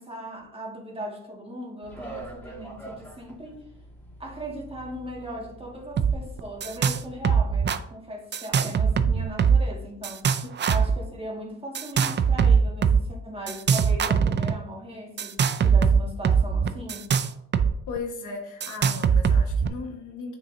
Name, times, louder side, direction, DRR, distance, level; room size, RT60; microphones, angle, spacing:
voice 1, 0.0-3.6 4.2-10.2 10.7-17.1, right 1 dB, 20° right, 1.9 m, -38 dB
sound 1, 1.8-7.3, right 2 dB, 5° left, 2.1 m, -44 dB
sound 2, 6.0-6.1 6.4-7.0 7.2-7.8 8.3-9.7 10.0-11.0 11.7-13.0 13.5-14.5 15.2-17.7 18.0-18.1 18.6-19.7, right 6 dB, 35° right, 0.5 m, -21 dB
voice 2, 17.9-20.4, left 4 dB, 80° left, 1.5 m, -36 dB
7.2 x 6.1 x 2.7 m
cardioid pair, 90°, 30 cm